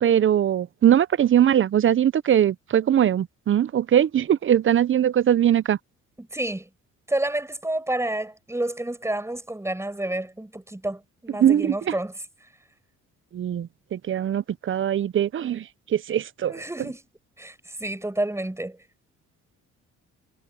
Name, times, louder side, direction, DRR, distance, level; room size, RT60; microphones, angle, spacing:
voice 1, 0.0-5.8 11.4-11.9 13.3-15.6 15.9-16.5, right 10 dB, 40° right, 0.5 m, -21 dB
voice 2, 6.2-6.7 7.1-12.2 16.5-17.0 17.4-17.5 17.8-18.8, right 1 dB, 10° right, 7.1 m, -29 dB
cardioid pair, 90°, 30 cm